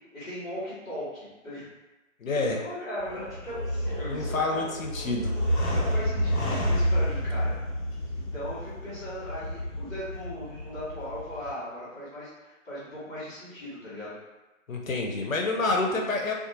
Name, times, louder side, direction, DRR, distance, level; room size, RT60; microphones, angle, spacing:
voice 1, 0.1-1.6 2.3-4.6 5.7-7.5 8.1-14.2, equal, 10° left, -13 dB, 0.9 m, -38 dB
voice 2, 2.2-2.6 4.1-5.3 14.7-16.3, left 3 dB, 85° left, 0 dB, 0.6 m, -28 dB
sound 1, 3.0-11.5, equal, 55° left, 1.2 m, -29 dB
sound 2, 3.1-6.8, right 2 dB, 15° right, 0.5 m, -44 dB
2.5 x 2.3 x 2.7 m, 1.1 s
figure-of-eight pair, 135°, 39 cm